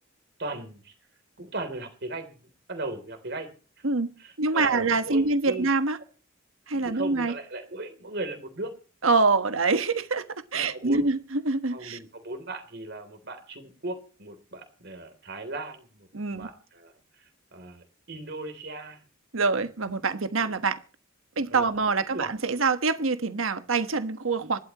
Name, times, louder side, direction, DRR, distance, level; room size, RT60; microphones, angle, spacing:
voice 1, 0.4-0.9 1.4-3.8 4.2-5.7 6.7-8.7 10.5-11.0 11.7-19.0 19.5-19.6 20.4-20.6 21.5-21.7 22.0-22.3, right 2 dB, 55° right, 3.3 m, -38 dB
voice 2, 3.8-6.0 6.7-7.3 9.0-10.2 10.5-12.0 16.1-16.5 19.3-20.8 21.4-24.6, right 3 dB, 80° right, 1.3 m, -25 dB
26.5 x 12.5 x 3.0 m
head